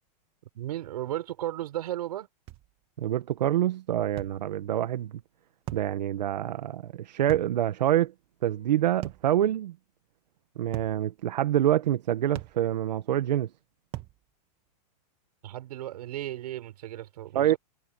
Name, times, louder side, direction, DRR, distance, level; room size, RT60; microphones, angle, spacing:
voice 1, 0.5-2.3 15.4-17.6, right 13 dB, 70° right, 7.0 m, -35 dB
sound 1, 2.5-2.7 4.2-4.4 5.7-5.9 7.3-7.5 9.0-9.3 10.7-11.0 12.3-12.6 13.9-14.2, right 16 dB, 25° right, 2.2 m, -39 dB
voice 2, 3.0-5.1 5.7-8.1 8.4-9.7 10.6-13.5 17.3-17.5, right 12 dB, 85° right, 1.5 m, -26 dB
supercardioid pair, 165°, 21 cm